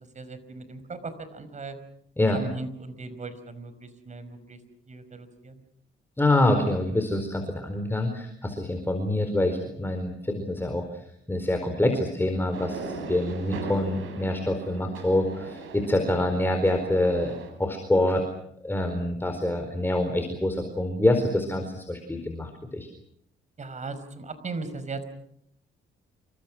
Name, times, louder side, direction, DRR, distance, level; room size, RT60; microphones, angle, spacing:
voice 1, 0.0-1.8 2.3-4.6 4.9-5.6 23.6-25.0, right 3 dB, 35° right, 12 dB, 5.1 m, -38 dB
voice 2, 6.2-10.8 11.3-18.2 18.6-22.9, left 1 dB, 10° left, 5 dB, 4.5 m, -26 dB
sound 1, 12.5-17.5, right 4 dB, 85° right, 7.7 m, -39 dB
28.5 x 25.0 x 6.2 m, 0.72 s
cardioid pair, 90°, 20 cm